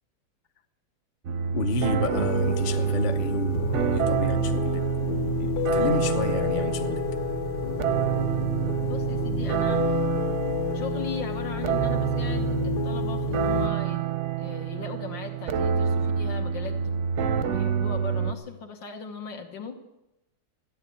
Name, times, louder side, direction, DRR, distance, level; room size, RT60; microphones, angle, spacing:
sound 1, 1.2-18.3, right 9 dB, 60° right, 0.8 m, -28 dB
voice 1, 1.5-7.0, left 4 dB, 40° left, 8 dB, 0.7 m, -31 dB
sound 2, 2.1-13.7, left 6 dB, 65° left, 2.4 m, -30 dB
voice 2, 8.8-9.8 10.7-14.1 14.4-19.8, left 5 dB, 85° left, 4 dB, 2.4 m, -38 dB
14.5 x 9.8 x 8.5 m, 0.93 s
omnidirectional pair, 2.0 m